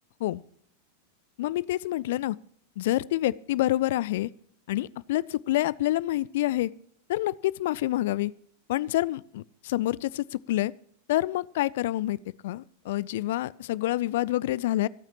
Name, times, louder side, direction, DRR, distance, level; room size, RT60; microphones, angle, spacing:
voice 1, 1.4-2.4 2.8-4.3 4.7-6.7 7.1-8.3 8.7-10.7 11.1-12.2 12.4-14.9, left 15 dB, 55° left, 22 dB, 0.4 m, -27 dB
26.5 x 8.9 x 3.0 m, 0.63 s
figure-of-eight pair, 90°, 0 cm